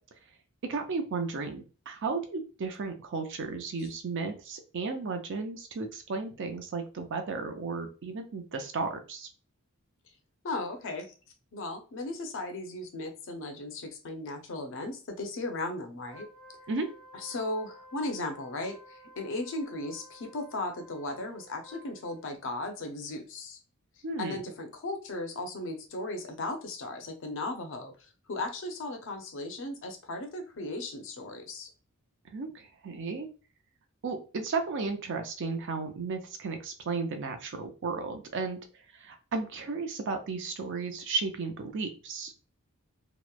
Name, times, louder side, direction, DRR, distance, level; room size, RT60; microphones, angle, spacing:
voice 1, 0.6-9.3 16.7-16.9 24.0-24.4 32.3-33.3 34.0-38.6 38.9-42.4, right 4 dB, 55° right, 6 dB, 0.5 m, -34 dB
voice 2, 10.4-11.1 11.5-16.3 17.2-23.6 24.2-27.9 28.3-31.7, left 2 dB, 60° left, 5 dB, 0.5 m, -36 dB
Wind instrument woodwind instrument, 16.1-22.4, equal, 5° left, 0.4 m, -53 dB
2.9 x 2.0 x 2.2 m, 0.34 s
head